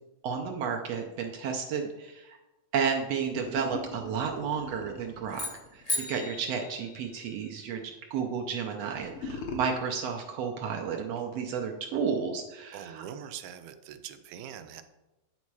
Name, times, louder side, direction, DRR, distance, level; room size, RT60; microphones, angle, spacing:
voice 1, 0.2-2.4 2.7-7.8 8.1-13.0, right 6 dB, 75° right, 2 dB, 1.6 m, -32 dB
sound 1, 3.2-7.0 8.9-9.6, left 5 dB, 60° left, 1.5 m, -41 dB
sound 2, 5.3-7.6, left 2 dB, 25° left, 0.8 m, -36 dB
voice 2, 12.7-14.8, right 9 dB, 90° right, 9 dB, 2.0 m, -43 dB
9.7 x 4.2 x 4.7 m, 1.0 s
omnidirectional pair, 3.3 m